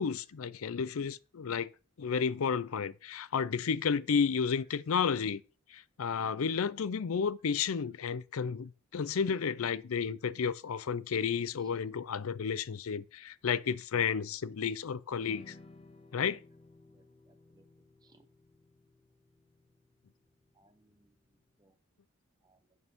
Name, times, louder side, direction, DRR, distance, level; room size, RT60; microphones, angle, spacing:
voice 1, 0.0-1.7 2.0-5.4 5.7-15.5 16.1-16.4, left 6 dB, 85° left, 0.5 m, -32 dB
sound 1, 15.2-21.5, left 2 dB, 30° left, 0.9 m, -58 dB
voice 2, 16.9-17.6 18.0-18.3 20.5-21.1 21.6-21.8 22.4-22.8, right 2 dB, 20° right, 0.7 m, -67 dB
10.5 x 6.3 x 3.6 m
head